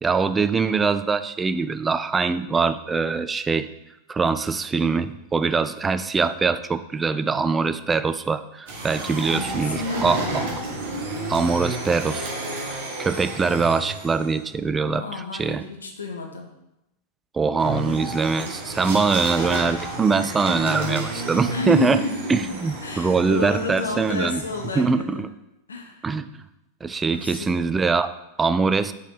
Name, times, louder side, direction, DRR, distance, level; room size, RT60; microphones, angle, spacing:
voice 1, 0.0-3.7 4.1-10.4 11.3-12.3 12.7-15.6 17.3-22.0 22.3-24.4 24.8-25.3 26.0-26.3 26.8-28.9, right 4 dB, 15° right, 12 dB, 0.4 m, -23 dB
sound 1, 8.7-14.5 17.6-24.8, right 1 dB, 50° right, 2.2 m, -32 dB
voice 2, 9.3-10.3 14.9-16.6 21.5-25.3 25.7-26.0 27.1-27.6, left 2 dB, 70° left, 3 dB, 1.0 m, -30 dB
5.6 x 4.6 x 6.3 m, 0.89 s
figure-of-eight pair, 90°, 0 cm